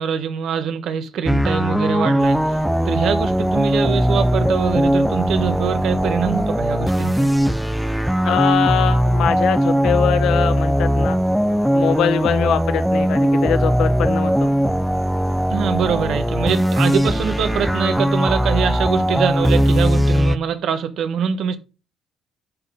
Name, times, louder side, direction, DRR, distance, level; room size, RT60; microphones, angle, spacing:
voice 1, 0.0-2.6 2.8-7.3 15.5-21.6, right 8 dB, 70° right, 1.2 m, -23 dB
sound 1, 1.2-20.4, equal, ahead, 0.4 m, -19 dB
sound 2, 2.2-20.2, right 3 dB, 45° right, 3.0 m, -37 dB
voice 2, 8.2-11.2 11.7-14.5, left 9 dB, 75° left, 0.9 m, -22 dB
10.5 x 4.1 x 5.1 m
cardioid pair, 100°, 0 cm